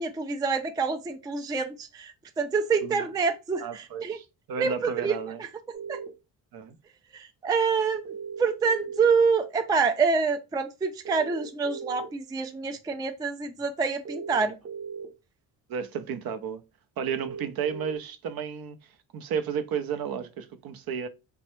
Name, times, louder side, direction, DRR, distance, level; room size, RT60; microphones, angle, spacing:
voice 1, 0.0-4.2 4.6-5.2 5.7-6.0 7.1-8.1 8.4-14.6, right 5 dB, 10° right, 0.3 m, -27 dB
voice 2, 3.6-5.4 6.5-6.8 15.7-16.6 17.0-18.8 19.1-21.1, right 7 dB, 60° right, 0.6 m, -33 dB
sound 1, 5.7-6.1 8.0-9.1 11.0-12.1 14.0-15.1 17.0-18.0, right 6 dB, 35° right, 0.9 m, -37 dB
3.0 x 2.2 x 3.0 m
cardioid pair, 75°, 41 cm